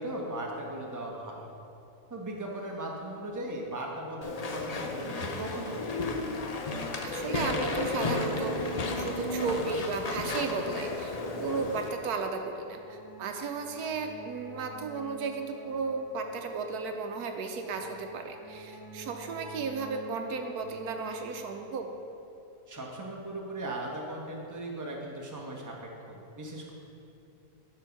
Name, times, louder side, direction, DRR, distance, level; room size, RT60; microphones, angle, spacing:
voice 1, 0.0-1.5 2.1-5.8 22.7-26.7, right 1 dB, 15° right, -2 dB, 1.0 m, -38 dB
Walk footsteps / Chatter / Squeak, 4.2-11.9, left 3 dB, 80° left, 0.3 m, -33 dB
sound 1, 4.8-21.6, right 1 dB, 15° left, 1.2 m, -48 dB
voice 2, 7.0-8.6 8.9-21.9, right 4 dB, 80° right, 4 dB, 1.2 m, -34 dB
12.0 x 4.5 x 6.0 m, 2.8 s
omnidirectional pair, 1.7 m